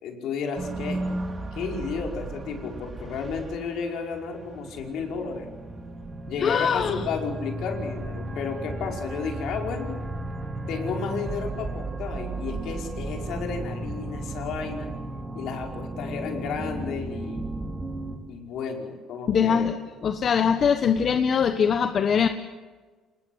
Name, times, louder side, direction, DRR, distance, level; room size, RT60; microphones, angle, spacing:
voice 1, 0.0-1.1 1.5-5.5 6.3-10.0 10.7-14.9 15.3-17.5 18.3-19.8, left 5 dB, 70° left, 2 dB, 5.4 m, -32 dB
sound 1, 0.6-18.2, right 2 dB, 25° right, 3.8 m, -35 dB
voice 2, 6.4-7.0 19.3-19.8 20.0-22.3, left 7 dB, 45° left, 8 dB, 1.2 m, -22 dB
28.5 x 20.0 x 8.1 m, 1.4 s
cardioid pair, 120°, 0 cm